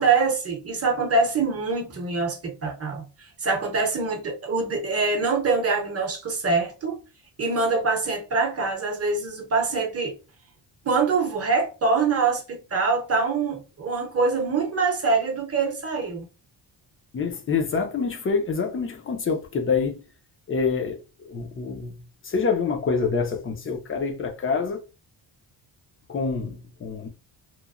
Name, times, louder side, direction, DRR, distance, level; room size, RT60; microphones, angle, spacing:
voice 1, 0.0-3.1 3.4-7.0 7.4-10.1 10.8-16.3, right 4 dB, 35° right, 0.7 m, -24 dB
voice 2, 17.1-20.0 20.5-21.9 22.2-24.8 26.1-27.1, left 5 dB, 30° left, 0.5 m, -26 dB
3.0 x 2.0 x 2.3 m
cardioid pair, 135°, 44 cm